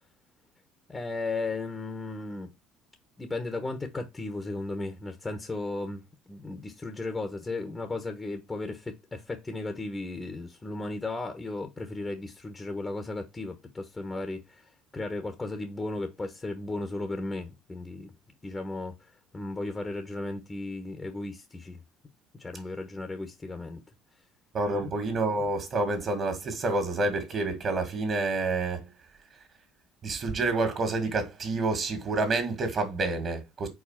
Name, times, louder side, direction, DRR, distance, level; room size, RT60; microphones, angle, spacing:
voice 1, 0.9-2.5 3.2-6.0 6.3-14.6 14.9-18.1 18.4-18.9 19.3-21.8 22.4-23.8 24.7-24.9, left 2 dB, 20° left, 1.1 m, -35 dB
voice 2, 24.5-28.8 30.0-33.7, right 3 dB, 40° right, 2.0 m, -28 dB
4.9 x 4.0 x 5.7 m
supercardioid pair, 90°, 0 cm